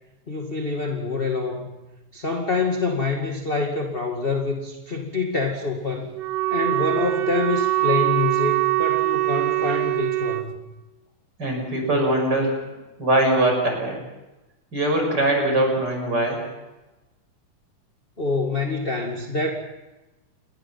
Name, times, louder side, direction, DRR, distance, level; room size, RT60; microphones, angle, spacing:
voice 1, 0.3-1.8 2.1-6.1 6.5-10.5 18.2-19.5, left 3 dB, 20° left, 2 dB, 1.8 m, -26 dB
Wind instrument woodwind instrument, 6.1-10.5, right 19 dB, 65° right, 1.9 m, -23 dB
voice 2, 11.4-12.6 13.0-14.0 14.7-16.4, right 1 dB, 30° right, 2 dB, 7.1 m, -21 dB
29.0 x 21.0 x 5.9 m, 1.1 s
omnidirectional pair, 3.8 m